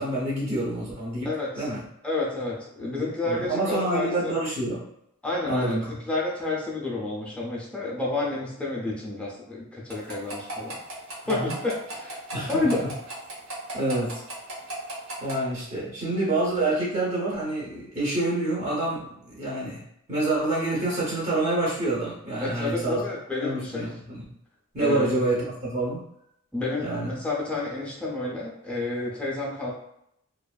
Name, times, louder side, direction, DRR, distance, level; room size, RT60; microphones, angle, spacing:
voice 1, 0.0-1.9 3.0-4.8 5.4-6.0 11.2-11.6 12.3-12.7 13.7-14.2 15.2-23.0 23.4-24.2 24.7-26.0 26.8-27.1, right 2 dB, 30° right, -7 dB, 0.7 m, -27 dB
voice 2, 1.2-1.7 2.0-4.3 5.2-5.8 6.0-10.8 11.3-12.2 12.5-12.8 22.4-23.9 24.8-25.1 26.5-29.7, left 2 dB, 5° left, -5 dB, 0.5 m, -30 dB
sound 1, 9.9-15.3, right 2 dB, 65° right, 0.9 m, -35 dB
2.5 x 2.2 x 2.3 m, 0.77 s
head